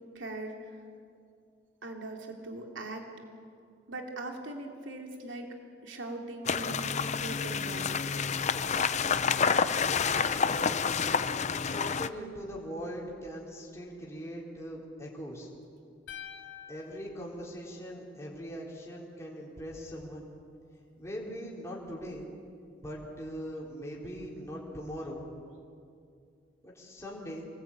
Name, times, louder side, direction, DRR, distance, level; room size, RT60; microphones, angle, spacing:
voice 1, 0.1-0.8 1.8-3.1 3.9-5.6 5.8-8.0, right 2 dB, 75° right, 2 dB, 3.0 m, -40 dB
sound 1, 6.4-12.1, left 6 dB, 35° left, 0.6 m, -28 dB
voice 2, 10.5-10.9 11.6-15.5 16.7-20.3 21.0-22.3 22.8-25.3 26.6-27.5, equal, 15° left, -4 dB, 3.9 m, -41 dB
sound 2, 16.1-18.3, left 9 dB, 75° left, 2.2 m, -48 dB
26.5 x 20.0 x 8.9 m, 2.4 s
head